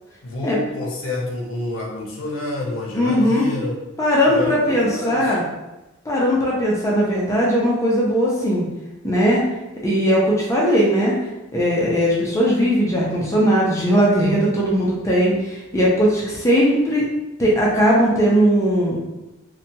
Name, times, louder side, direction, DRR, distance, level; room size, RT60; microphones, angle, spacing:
voice 1, 0.2-3.8 4.2-5.4, left 2 dB, 75° left, -1 dB, 0.6 m, -28 dB
voice 2, 3.0-3.5 4.0-5.4 6.1-8.7 9.0-9.4 9.8-11.1 11.5-17.0 17.4-19.0, equal, 15° left, -5 dB, 0.4 m, -18 dB
2.7 x 2.2 x 2.7 m, 1.0 s
head